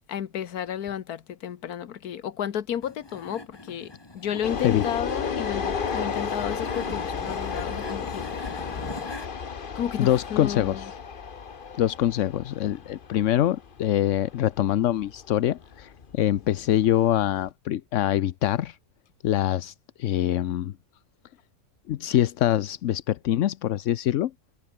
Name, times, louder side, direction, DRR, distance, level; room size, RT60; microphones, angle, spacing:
voice 1, 0.1-8.5 9.7-10.9, left 9 dB, 90° left, 1.6 m, -32 dB
sound 1, 2.8-9.3, left 2 dB, 15° left, 1.7 m, -42 dB
sound 2, 4.4-17.5, left 6 dB, 40° left, 1.2 m, -33 dB
voice 2, 10.0-10.9 11.8-18.8 19.2-20.7 21.9-24.3, left 12 dB, 65° left, 0.9 m, -24 dB
omnidirectional pair, 1.6 m